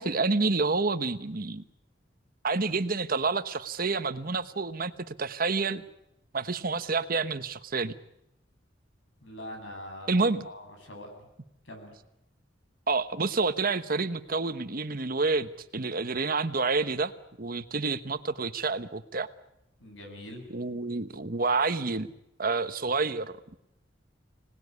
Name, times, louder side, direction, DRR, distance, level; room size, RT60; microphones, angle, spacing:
voice 1, 0.0-1.6 2.4-5.8 6.3-8.0 10.1-10.4 12.9-17.1 17.4-19.3 20.5-22.1 22.4-23.5, right 3 dB, 50° right, 11 dB, 1.1 m, -28 dB
voice 2, 9.2-11.3 11.6-11.9 19.8-20.5, left 1 dB, 80° left, 4 dB, 7.6 m, -43 dB
26.0 x 19.0 x 9.6 m, 0.86 s
head